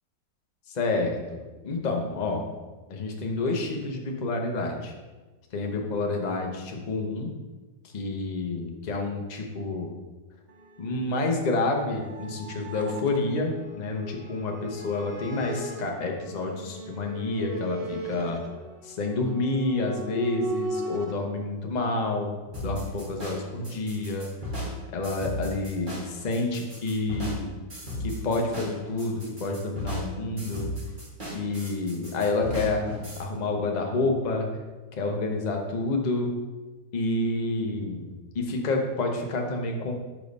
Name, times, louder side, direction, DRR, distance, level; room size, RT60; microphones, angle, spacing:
voice 1, 0.7-2.4 2.9-4.9 5.5-7.3 7.8-9.9 10.8-18.4 18.8-22.3 22.6-24.3 24.9-27.5 28.0-30.7 31.3-32.8 33.2-34.5 34.9-36.3 36.9-38.1 38.3-39.9, left 2 dB, 65° left, 2 dB, 0.4 m, -29 dB
sound 1, 10.5-21.1, right 1 dB, 60° right, 0.6 m, -38 dB
sound 2, 22.5-33.2, equal, 25° right, 2.0 m, -36 dB
5.1 x 4.6 x 5.2 m, 1.2 s
omnidirectional pair, 2.0 m